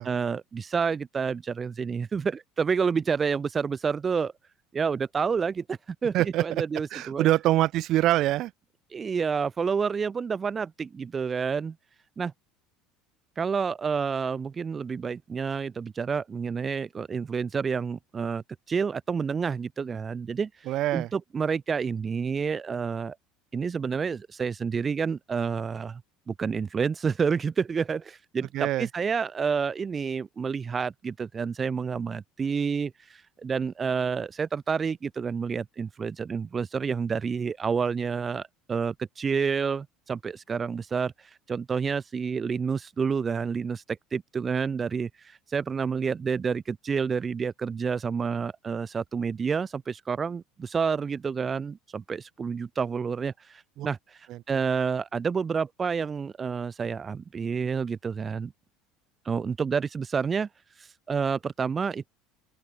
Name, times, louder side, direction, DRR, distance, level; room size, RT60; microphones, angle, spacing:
voice 1, 0.0-4.3 4.7-7.3 8.9-11.7 12.2-12.3 13.4-23.2 23.5-26.0 26.3-58.5 59.2-60.5 60.8-62.1, right 6 dB, 20° right, 1.2 m, -29 dB
voice 2, 6.1-6.6 6.9-8.5 20.7-21.1 28.5-28.9 53.8-53.9 54.3-54.4, right 15 dB, 50° right, 1.7 m, -24 dB
open air
cardioid pair, 145°, 0 cm